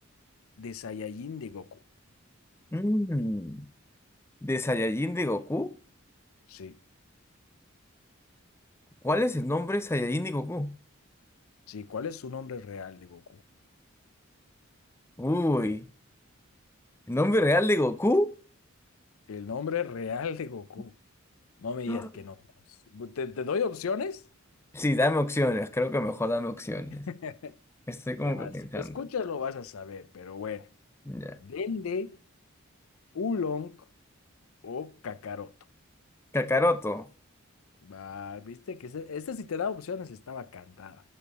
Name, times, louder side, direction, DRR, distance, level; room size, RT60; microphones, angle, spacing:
voice 1, 0.6-1.8 6.5-6.8 11.7-13.4 19.3-20.9 21.6-22.4 22.9-24.2 26.9-27.5 28.2-30.7 31.4-32.2 33.1-33.8 34.6-35.5 37.8-41.0, left 5 dB, 85° left, 0.5 m, -35 dB
voice 2, 2.7-3.7 4.4-5.7 9.0-10.7 15.2-15.9 17.1-18.3 21.9-22.1 24.7-27.1 27.9-29.0 31.1-31.4 36.3-37.1, left 1 dB, 10° left, 0.6 m, -27 dB
12.0 x 4.7 x 4.1 m
head